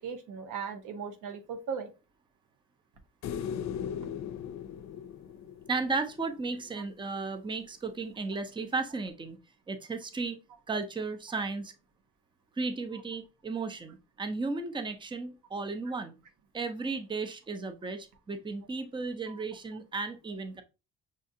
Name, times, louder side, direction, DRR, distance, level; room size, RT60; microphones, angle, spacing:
voice 1, 0.0-1.9 19.3-19.4, right 6 dB, 85° right, 0.9 m, -38 dB
sound 1, 3.2-6.5 9.1-9.2, left 8 dB, 65° left, 0.5 m, -38 dB
voice 2, 5.7-9.4 9.7-10.4 10.7-11.7 12.6-16.1 16.5-20.6, right 3 dB, 15° right, 0.6 m, -34 dB
6.3 x 2.4 x 2.7 m
cardioid pair, 90°, 30 cm